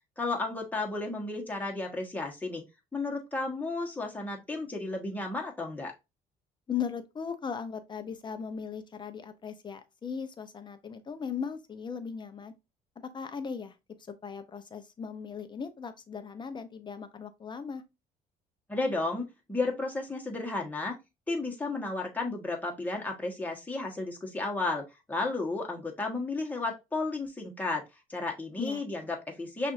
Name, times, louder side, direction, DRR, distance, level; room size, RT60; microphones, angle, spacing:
voice 1, 0.2-2.6 2.9-5.9 18.7-20.9 21.3-27.8 28.1-29.7, left 3 dB, 10° left, 1.3 m, -33 dB
voice 2, 6.7-12.5 13.0-13.8 14.1-17.8 28.6-28.8, left 6 dB, 25° left, 0.7 m, -38 dB
6.0 x 2.6 x 2.6 m
cardioid pair, 110°, 17 cm